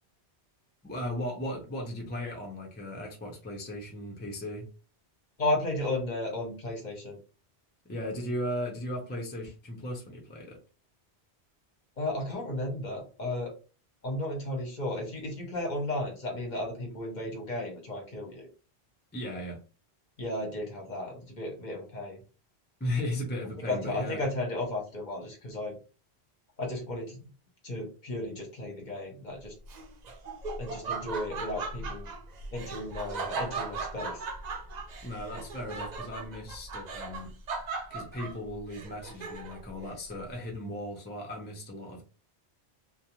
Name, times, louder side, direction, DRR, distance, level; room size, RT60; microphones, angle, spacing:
voice 1, 0.8-4.7 7.9-10.6 19.1-19.6 22.8-24.2 35.0-37.3 37.9-42.0, left 1 dB, 15° left, -1 dB, 0.5 m, -36 dB
voice 2, 5.4-7.2 12.0-13.5 14.0-18.5 20.2-22.2 23.7-25.8 26.6-27.2 27.6-29.5 30.6-32.1 32.5-34.2, left 1 dB, 45° left, 0 dB, 0.9 m, -34 dB
Laughter, 29.7-39.7, right 4 dB, 55° right, 0.5 m, -38 dB
2.5 x 2.2 x 2.9 m, 0.34 s
omnidirectional pair, 1.1 m